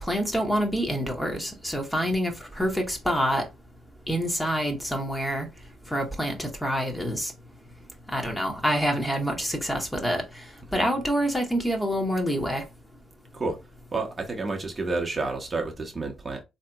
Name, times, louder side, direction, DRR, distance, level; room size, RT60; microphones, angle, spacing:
voice 1, 0.0-3.5 4.1-5.5 5.9-7.3 8.1-10.4 10.7-12.6, equal, 10° left, 1.1 m, -27 dB
voice 2, 13.9-16.4, right 3 dB, 30° right, 0.9 m, -30 dB
3.4 x 2.8 x 2.3 m
supercardioid pair, 70°, 0 cm